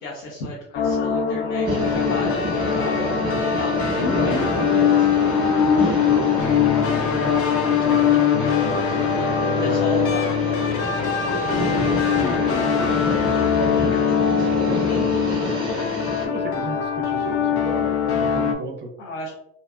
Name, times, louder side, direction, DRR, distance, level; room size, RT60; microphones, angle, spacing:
voice 1, 0.0-3.1 3.5-5.4 5.8-6.4 7.4-9.3 9.5-10.8 13.9-14.5 14.8-15.0 19.0-19.3, left 2 dB, 80° left, -2 dB, 0.7 m, -35 dB
sound 1, 0.7-18.5, left 7 dB, 35° left, 0.4 m, -21 dB
sound 2, 1.7-16.3, right 1 dB, 10° right, 0.8 m, -29 dB
voice 2, 5.9-6.5 7.7-8.3 9.2-9.8 11.4-12.0 13.5-14.0 14.4-15.3 16.2-18.9, right 3 dB, 30° right, 4 dB, 0.4 m, -34 dB
2.6 x 2.3 x 2.3 m, 0.78 s
supercardioid pair, 85°, 39 cm